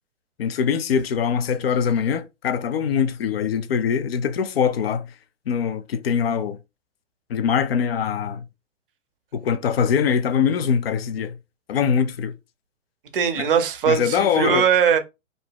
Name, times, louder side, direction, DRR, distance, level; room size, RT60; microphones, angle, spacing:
voice 1, 0.4-5.1 5.5-6.6 7.3-8.5 9.3-11.4 11.7-12.3 13.4-13.5 13.9-14.7, left 7 dB, 55° left, 0.5 m, -23 dB
voice 2, 13.1-15.0, right 7 dB, 45° right, 0.5 m, -20 dB
2.6 x 2.0 x 3.4 m
figure-of-eight pair, 115°, 38 cm